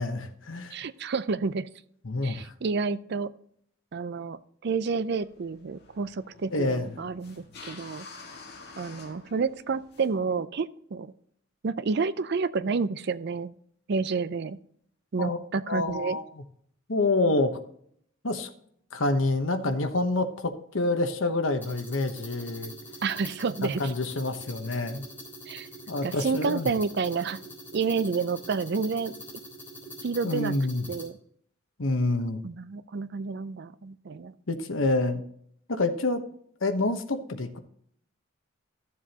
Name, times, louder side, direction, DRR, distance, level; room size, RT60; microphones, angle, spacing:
voice 1, 0.0-0.8 2.0-2.5 6.5-6.9 15.2-15.4 15.7-16.2 16.9-17.6 18.2-18.5 18.9-22.7 23.8-25.0 25.9-26.7 30.2-30.9 31.8-32.4 34.5-35.2 35.7-36.2 36.6-37.6, left 2 dB, 70° left, 7 dB, 1.0 m, -27 dB
voice 2, 0.7-1.7 2.2-3.3 3.9-8.1 8.8-11.1 11.6-13.5 13.9-14.6 15.1-16.2 23.0-23.9 25.5-25.7 26.0-27.4 27.7-29.1 30.0-30.5 30.9-31.2 32.4-34.3, right 4 dB, 55° right, 15 dB, 0.5 m, -29 dB
sound 1, 5.2-10.2, left 4 dB, 55° left, 1.9 m, -48 dB
sound 2, 21.6-31.1, equal, 10° left, 3.4 m, -44 dB
14.0 x 7.3 x 2.9 m, 0.66 s
head